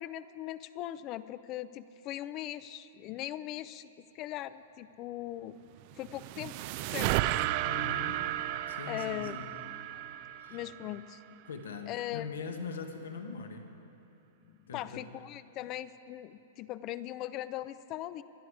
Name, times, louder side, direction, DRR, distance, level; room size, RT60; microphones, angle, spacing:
voice 1, 0.0-5.6 6.0-7.3 8.9-9.4 10.5-11.2 11.9-12.3 14.7-18.2, left 14 dB, 35° left, 14 dB, 0.4 m, -40 dB
sound 1, 5.8-11.2, right 15 dB, 45° right, 0.4 m, -34 dB
voice 2, 7.6-8.2 8.7-9.6 10.4-10.6 11.4-13.7 14.7-15.0, left 5 dB, 90° left, 5 dB, 1.5 m, -41 dB
24.5 x 9.7 x 4.9 m, 2.9 s
hypercardioid pair, 135°, 0 cm